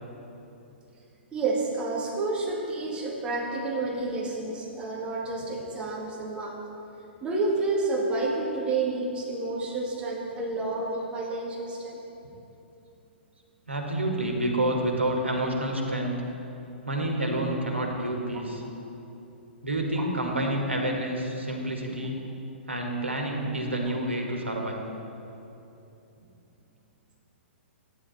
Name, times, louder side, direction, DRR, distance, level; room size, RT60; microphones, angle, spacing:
voice 1, 1.3-6.6 7.2-12.0 20.0-20.1, right 3 dB, 15° right, -3 dB, 2.0 m, -30 dB
voice 2, 13.7-16.2 16.9-18.6 19.6-22.2 22.7-24.9, right 1 dB, 85° right, 1 dB, 1.7 m, -28 dB
12.5 x 9.9 x 4.1 m, 2.9 s
figure-of-eight pair, 115°, 6 cm